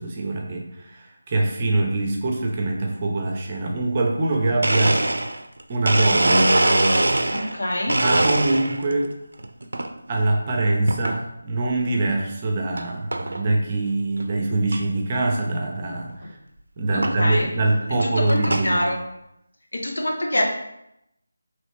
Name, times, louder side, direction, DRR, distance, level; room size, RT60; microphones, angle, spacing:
voice 1, 0.0-5.0 5.7-6.5 7.9-9.1 10.1-16.4 16.8-18.8, right 2 dB, 25° right, 0 dB, 0.6 m, -23 dB
Domestic sounds home sounds, 4.3-4.4 4.6-7.6 7.9-8.9 9.4-9.9 10.9-11.2 11.8-11.9 12.8-12.9 13.1-13.4 13.9-14.0 14.2-14.3 14.7-14.8 16.1-16.2 17.0-17.2 17.8-18.7, right 1 dB, 75° right, 0.4 m, -22 dB
voice 2, 7.3-8.0 16.9-17.5 18.0-19.0 19.7-20.4, left 1 dB, 75° left, 1 dB, 0.9 m, -25 dB
4.0 x 3.1 x 3.2 m, 0.82 s
figure-of-eight pair, 165°, 0 cm